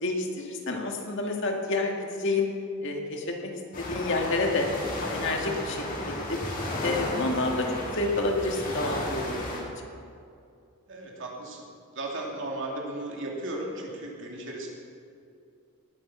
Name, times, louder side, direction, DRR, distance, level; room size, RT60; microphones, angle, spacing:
voice 1, 0.0-2.5 2.8-3.5 3.8-4.7 4.9-6.4 6.8-9.7, left 2 dB, 55° left, 1 dB, 2.0 m, -29 dB
sound 1, 3.7-9.6, left 1 dB, 40° left, 2.7 m, -34 dB
voice 2, 10.9-11.6 11.9-14.7, right 2 dB, 55° right, -1 dB, 2.8 m, -35 dB
18.5 x 9.3 x 6.1 m, 2.5 s
head